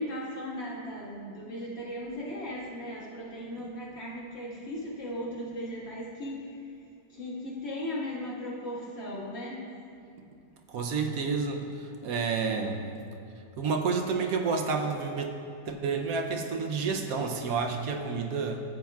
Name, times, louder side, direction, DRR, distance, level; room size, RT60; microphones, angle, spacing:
voice 1, 0.0-6.6 7.1-9.6, left 1 dB, 40° left, -5 dB, 1.8 m, -37 dB
voice 2, 10.7-11.6 12.0-12.8 13.6-15.3 15.7-18.6, right 5 dB, 65° right, 3 dB, 1.0 m, -29 dB
14.5 x 8.8 x 2.3 m, 2.4 s
omnidirectional pair, 1.8 m